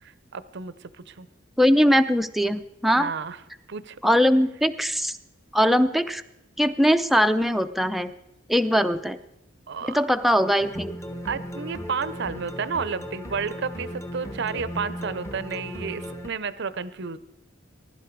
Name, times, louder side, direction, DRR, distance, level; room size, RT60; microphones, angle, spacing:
voice 1, 0.0-1.3 2.9-3.4 3.7-4.0 9.7-10.0 11.2-17.2, right 5 dB, 60° right, 15 dB, 0.7 m, -31 dB
voice 2, 1.6-3.1 4.0-5.2 5.5-6.2 6.6-8.1 8.5-9.2 9.9-10.9, equal, ahead, 8 dB, 0.5 m, -21 dB
sound 1, 10.6-16.3, equal, 15° left, 1.0 m, -36 dB
20.0 x 11.5 x 4.6 m, 0.87 s
head